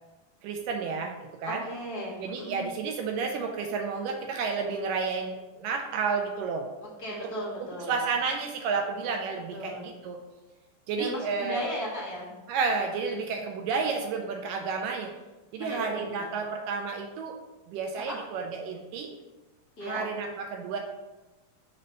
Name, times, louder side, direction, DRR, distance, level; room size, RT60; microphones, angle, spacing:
voice 1, 0.4-1.1 1.4-1.6 2.2-6.6 7.9-10.2 10.9-11.7 12.5-15.1 15.5-17.4 17.7-19.1 19.8-20.8, right 5 dB, 80° right, 4 dB, 2.1 m, -31 dB
voice 2, 1.4-2.6 7.0-8.0 9.5-9.8 10.9-12.3 15.6-16.3 18.0-18.2 19.8-20.1, equal, 35° left, -6 dB, 1.6 m, -36 dB
5.5 x 4.1 x 5.3 m, 1.1 s
omnidirectional pair, 4.0 m